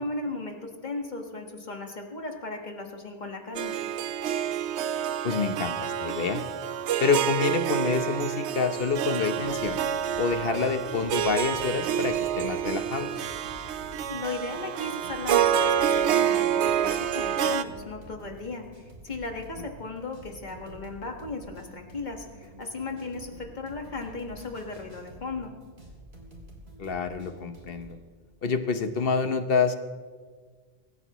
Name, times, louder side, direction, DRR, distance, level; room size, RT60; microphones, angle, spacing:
voice 1, 0.0-3.7 14.1-25.5, left 3 dB, 45° left, 3 dB, 1.7 m, -36 dB
Harp, 3.6-17.6, right 9 dB, 85° right, 0.9 m, -28 dB
voice 2, 5.2-6.4 7.0-9.8 10.2-13.1 26.8-28.0 28.4-29.7, left 5 dB, 60° left, 9 dB, 1.1 m, -27 dB
sound 1, 8.7-27.9, right 1 dB, 70° right, 3.0 m, -48 dB
24.0 x 14.0 x 3.1 m, 1.5 s
omnidirectional pair, 1.1 m